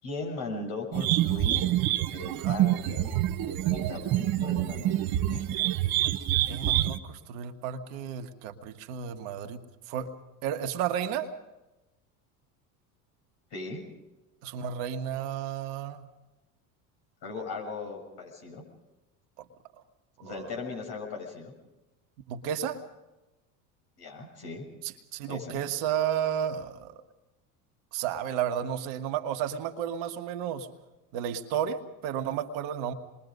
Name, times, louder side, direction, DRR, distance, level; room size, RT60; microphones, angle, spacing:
voice 1, 0.0-1.7 2.1-3.1 3.4-4.9 5.3-5.4 6.5-6.7 13.5-13.8 17.2-18.6 20.2-21.5 24.0-24.7 25.3-25.6, left 3 dB, 55° left, 1 dB, 6.9 m, -38 dB
sound 1, 0.9-7.0, right 13 dB, 50° right, 1.2 m, -27 dB
voice 2, 6.5-10.1 10.4-11.3 14.4-16.1 19.4-19.5 20.2-20.5 22.3-22.8 24.8-26.9 27.9-30.7 31.1-32.9, right 9 dB, 65° right, 6 dB, 1.7 m, -32 dB
27.0 x 22.0 x 5.3 m, 1.0 s
hypercardioid pair, 80°, 46 cm